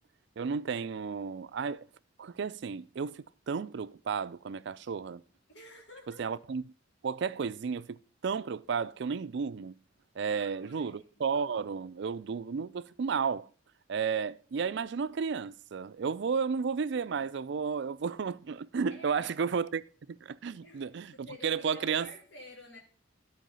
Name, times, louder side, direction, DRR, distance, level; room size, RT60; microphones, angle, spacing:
voice 1, 0.4-1.9 2.2-5.2 6.2-6.7 7.0-8.0 8.2-9.7 10.2-13.5 13.9-19.8 20.2-22.1, right 6 dB, 60° right, 0.4 m, -33 dB
voice 2, 5.5-6.4 10.3-11.2 18.9-19.3 20.6-20.8 21.2-22.8, left 2 dB, 60° left, 2.8 m, -51 dB
12.0 x 4.7 x 5.5 m
head